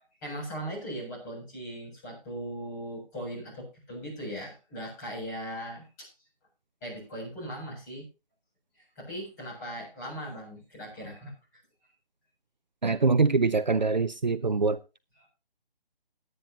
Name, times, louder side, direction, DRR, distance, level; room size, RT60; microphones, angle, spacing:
voice 1, 0.0-6.1 6.8-8.1 9.0-11.3 15.2-15.3, equal, 20° left, 7.7 m, -39 dB
voice 2, 12.8-14.8, right 4 dB, 50° right, 0.8 m, -24 dB
20.0 x 9.4 x 3.0 m
figure-of-eight pair, 155°, 29 cm